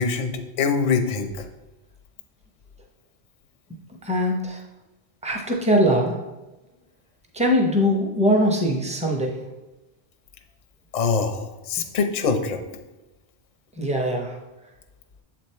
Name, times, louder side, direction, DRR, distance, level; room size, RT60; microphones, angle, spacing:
voice 1, 0.0-1.5 10.9-12.6, left 5 dB, 50° left, 6 dB, 0.6 m, -24 dB
voice 2, 4.0-4.6 5.2-6.2 7.3-9.3 13.8-14.3, equal, 5° right, 1 dB, 0.7 m, -21 dB
7.3 x 3.5 x 4.3 m, 1.1 s
omnidirectional pair, 1.1 m